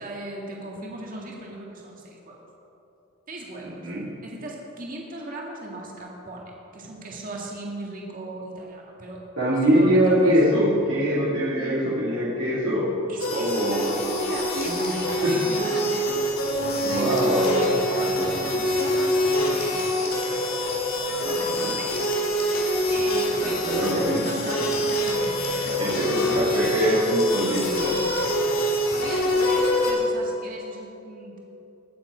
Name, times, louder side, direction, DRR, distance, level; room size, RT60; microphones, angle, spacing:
voice 1, 0.0-2.5 3.3-3.8 4.2-9.2 9.7-10.4 11.6-12.0 13.1-16.1 16.8-20.6 21.1-21.9 22.9-26.9 28.5-31.4, right 2 dB, 40° right, -2 dB, 1.8 m, -38 dB
voice 2, 3.6-4.1 9.4-12.9 13.3-13.9 14.6-14.9 15.2-15.3 16.8-17.6 21.3-21.7 23.4-24.2 25.8-28.0, equal, 65° right, -9 dB, 2.5 m, -23 dB
sound 1, 13.2-29.9, equal, 75° left, 2.3 m, -25 dB
sound 2, 14.6-15.0 17.2-17.6 19.6-20.4 22.0-22.7 24.7-25.8 27.2-28.3, left 3 dB, 35° left, 3.2 m, -42 dB
20.0 x 7.4 x 5.0 m, 2.9 s
head